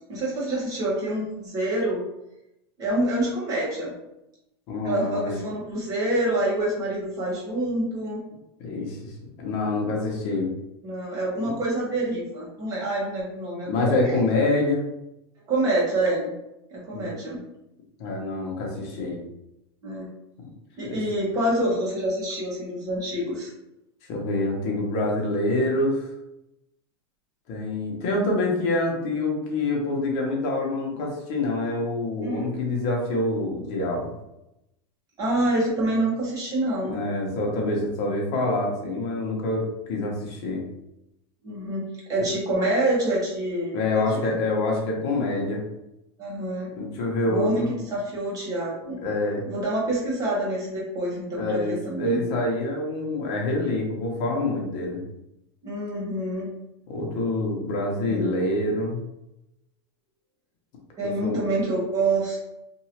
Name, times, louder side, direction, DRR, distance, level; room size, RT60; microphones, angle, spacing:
voice 1, 0.1-2.0 2.8-3.9 4.8-8.2 10.8-14.0 15.5-16.3 16.7-17.4 19.8-20.1 20.8-23.5 32.2-32.5 35.2-37.0 41.4-43.7 44.1-44.3 46.2-46.7 47.2-49.0 49.4-52.2 55.6-56.5 58.0-58.5 61.0-62.5, right 1 dB, 25° right, -5 dB, 1.2 m, -27 dB
voice 2, 4.7-5.3 8.6-9.1 9.4-10.5 13.7-14.8 16.9-17.1 18.0-19.2 20.8-21.0 24.1-26.1 27.5-34.1 36.8-40.6 43.7-45.6 46.7-47.7 49.0-49.4 51.3-55.0 56.9-59.0 61.2-61.4, left 2 dB, 45° left, 0 dB, 0.9 m, -26 dB
2.9 x 2.6 x 2.9 m, 0.88 s
supercardioid pair, 145°, 14 cm